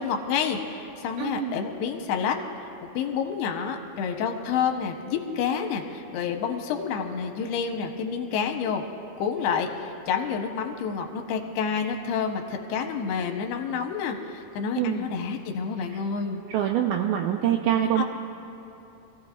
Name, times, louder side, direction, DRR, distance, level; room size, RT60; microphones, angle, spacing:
voice 1, 0.0-2.4 2.8-8.8 9.2-16.4 18.0-18.1, left 6 dB, 85° left, 4 dB, 3.0 m, -29 dB
voice 2, 1.2-1.6 14.8-15.1 15.9-16.0 16.5-18.0, right 10 dB, 85° right, 3 dB, 2.0 m, -25 dB
26.0 x 16.0 x 2.5 m, 2.8 s
omnidirectional pair, 4.6 m